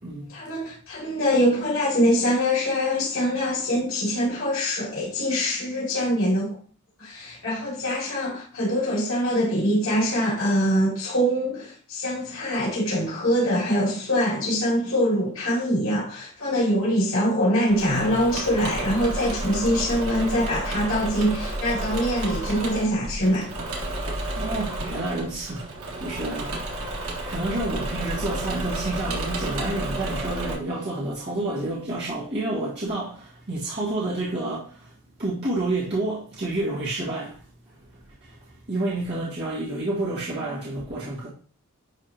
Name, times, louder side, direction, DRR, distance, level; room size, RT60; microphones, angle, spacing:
voice 1, 0.3-6.6 7.0-23.5, equal, 75° left, 3.3 m, -24 dB
Engine / Mechanisms, 17.7-30.6, right 1 dB, 85° right, 2.1 m, -31 dB
voice 2, 24.3-25.7 26.0-34.9 35.2-37.4 38.2-41.3, right 2 dB, 55° right, 1.8 m, -29 dB
11.0 x 3.7 x 2.9 m
head